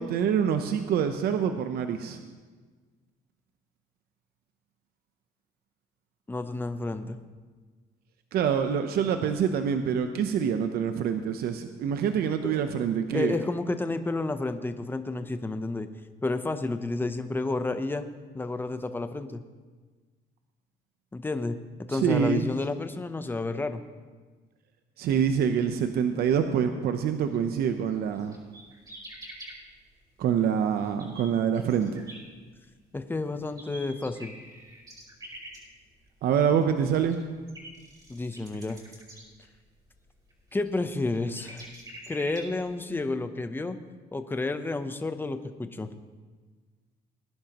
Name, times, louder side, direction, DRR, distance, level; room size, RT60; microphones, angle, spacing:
voice 1, 0.0-2.2 8.3-13.3 21.9-22.5 25.0-28.4 30.2-32.1 36.2-37.2, right 8 dB, 65° right, 7 dB, 0.8 m, -26 dB
voice 2, 6.3-7.2 12.4-12.6 13.1-15.9 16.2-18.1 18.3-19.4 21.1-23.8 32.9-34.4 38.1-38.8 40.5-41.7 42.1-43.8 44.1-46.0, left 2 dB, 10° left, 9 dB, 0.8 m, -31 dB
sound 1, 27.5-27.6 27.9-29.5 30.2-30.3 30.7-32.9 33.3-42.9, right 1 dB, 25° right, 4.7 m, -46 dB
20.0 x 10.5 x 3.0 m, 1.4 s
cardioid pair, 110°, 17 cm